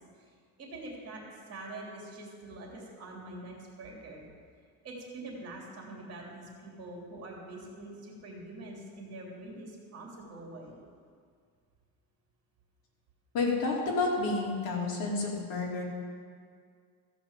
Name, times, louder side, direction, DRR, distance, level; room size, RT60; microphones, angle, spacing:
voice 1, 0.2-1.2 1.5-4.2 4.8-10.8, right 2 dB, 40° right, -2 dB, 3.0 m, -45 dB
voice 2, 13.3-15.8, left 3 dB, 65° left, -2 dB, 2.6 m, -30 dB
14.5 x 5.2 x 7.3 m, 2.1 s
cardioid pair, 145°, 39 cm